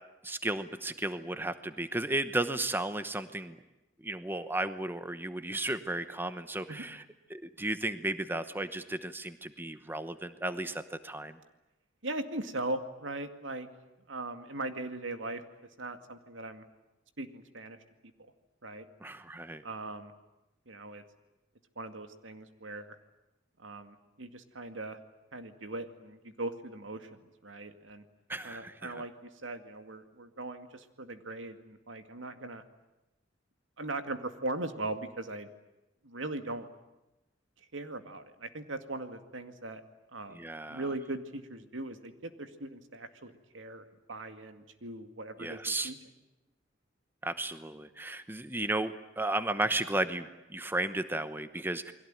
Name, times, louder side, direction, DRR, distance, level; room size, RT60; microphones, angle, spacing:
voice 1, 0.2-3.6 4.0-7.0 7.3-11.4 19.0-19.6 28.3-29.0 40.3-40.8 45.4-45.9 47.2-51.9, right 2 dB, 10° right, 11 dB, 1.0 m, -34 dB
voice 2, 12.0-13.7 14.1-15.4 15.8-16.6 17.2-17.8 18.6-18.9 19.6-20.1 20.7-21.0 21.8-23.0 23.6-25.0 25.3-28.0 28.4-32.6 33.8-35.5 36.0-36.7 37.6-39.8 40.1-46.0, right 2 dB, 80° right, 8 dB, 2.2 m, -39 dB
29.0 x 22.0 x 9.1 m, 0.99 s
head